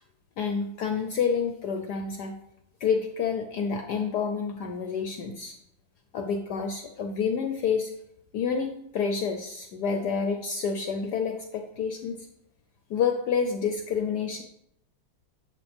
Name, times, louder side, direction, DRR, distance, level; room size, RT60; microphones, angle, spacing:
voice 1, 0.4-2.4 2.8-5.5 6.1-7.9 8.3-12.2 12.9-14.4, left 6 dB, 65° left, 5 dB, 1.1 m, -28 dB
11.0 x 7.2 x 3.5 m, 0.78 s
omnidirectional pair, 2.2 m